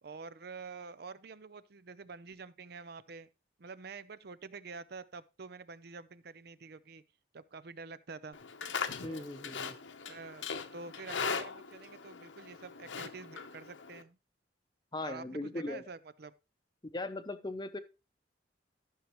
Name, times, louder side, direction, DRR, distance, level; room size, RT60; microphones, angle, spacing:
voice 1, 0.0-3.3 3.6-7.0 7.3-8.4 9.0-9.3 10.1-10.4 10.7-14.2 15.0-16.3, right 4 dB, 55° right, 0.6 m, -47 dB
Livestock farm animals working animals, 8.3-14.0, left 5 dB, 85° left, 0.8 m, -40 dB
voice 2, 9.0-9.8 14.9-15.8 16.9-17.8, left 2 dB, 25° left, 0.7 m, -39 dB
13.5 x 6.4 x 3.1 m
head